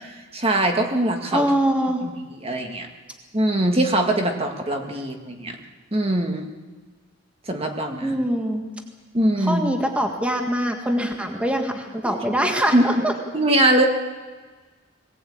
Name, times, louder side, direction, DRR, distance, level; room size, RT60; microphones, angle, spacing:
voice 1, 0.3-1.5 2.0-2.9 3.3-5.6 5.9-6.5 7.5-8.1 9.1-9.6 12.0-12.1 12.7-13.1 13.3-13.8, right 1 dB, 30° right, 3 dB, 1.9 m, -22 dB
voice 2, 1.3-2.0 8.0-8.6 9.4-13.1, equal, 5° right, 3 dB, 1.8 m, -23 dB
21.5 x 18.0 x 8.6 m, 1.4 s
head